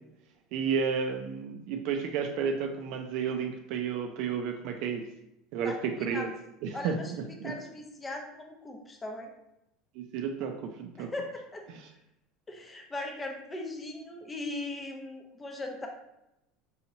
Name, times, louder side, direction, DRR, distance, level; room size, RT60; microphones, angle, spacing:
voice 1, 0.5-5.0 5.5-6.3 6.6-7.5 10.0-11.1 11.7-11.8, right 6 dB, 60° right, 3 dB, 0.4 m, -32 dB
voice 2, 5.6-6.3 6.7-7.1 7.4-9.3 11.0-11.7 12.5-15.9, left 2 dB, 15° left, 2 dB, 0.6 m, -39 dB
5.5 x 2.9 x 2.7 m, 0.86 s
supercardioid pair, 145°, 0 cm